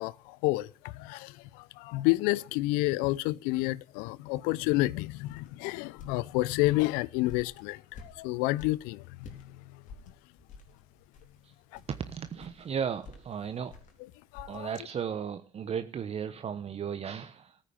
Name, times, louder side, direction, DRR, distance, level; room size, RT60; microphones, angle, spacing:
voice 1, 0.0-9.5 11.7-11.8 14.3-14.7, left 20 dB, 75° left, 0.6 m, -30 dB
sound 1, 5.3-9.5 9.9-14.6, left 4 dB, 60° left, 3.9 m, -50 dB
voice 2, 11.9-13.7 14.5-17.6, right 7 dB, 45° right, 1.1 m, -35 dB
14.5 x 8.8 x 9.0 m
hypercardioid pair, 60°, 15 cm